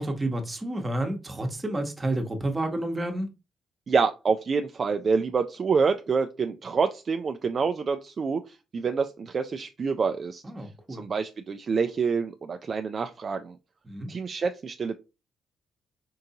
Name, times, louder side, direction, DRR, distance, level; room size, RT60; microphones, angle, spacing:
voice 1, 0.0-3.3 10.4-11.0 13.9-14.1, right 1 dB, 20° right, 1.0 m, -30 dB
voice 2, 3.9-10.4 11.0-13.5 14.1-15.0, right 5 dB, 45° right, 0.3 m, -27 dB
4.6 x 2.6 x 2.8 m
cardioid pair, 90°, 0 cm